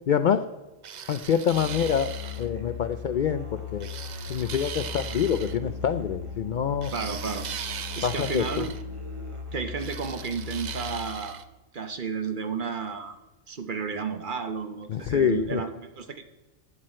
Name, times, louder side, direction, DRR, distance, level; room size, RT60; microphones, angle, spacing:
voice 1, 0.1-0.5 1.1-3.9 4.3-6.9 8.0-8.7 14.9-15.6, left 8 dB, 85° left, 11 dB, 0.4 m, -26 dB
sound 1, 0.8-2.5 3.8-5.6 6.8-8.8 9.8-11.4, right 8 dB, 70° right, 0.4 m, -39 dB
Musical instrument, 1.5-11.3, left 6 dB, 25° right, 1.8 m, -38 dB
voice 2, 6.9-7.5 8.0-8.7 9.5-11.4 11.7-16.2, right 5 dB, 45° right, 8 dB, 0.8 m, -32 dB
15.0 x 9.6 x 4.3 m, 1.1 s
omnidirectional pair, 1.4 m